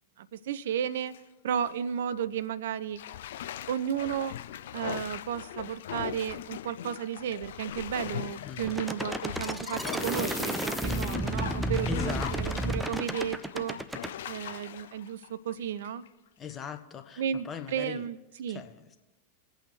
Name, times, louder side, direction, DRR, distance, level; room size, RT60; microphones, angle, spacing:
voice 1, 0.2-1.1 1.4-3.0 3.7-4.3 4.7-13.8 14.3-16.0 17.2-18.6, right 9 dB, 60° right, 15 dB, 0.5 m, -33 dB
Bathtub (filling or washing), 0.8-1.2 1.6-1.8 3.0-16.1 16.5-16.6, left 11 dB, 60° left, 0.4 m, -40 dB
voice 2, 8.4-8.9 11.9-12.7 16.4-18.1 18.5-19.0, left 7 dB, 25° left, 8 dB, 1.0 m, -40 dB
sound 1, 8.7-14.1, right 1 dB, 5° right, 0.6 m, -32 dB
25.0 x 8.4 x 3.2 m, 1.1 s
figure-of-eight pair, 90°, 0 cm